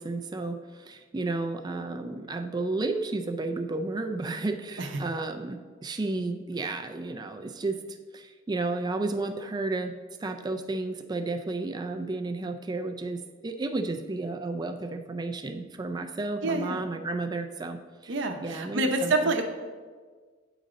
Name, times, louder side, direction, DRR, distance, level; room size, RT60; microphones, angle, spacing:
voice 1, 0.0-19.3, right 2 dB, 20° right, 6 dB, 0.4 m, -32 dB
voice 2, 16.4-16.8 18.1-19.4, right 2 dB, 65° right, 4 dB, 0.7 m, -27 dB
8.6 x 4.0 x 5.0 m, 1.5 s
head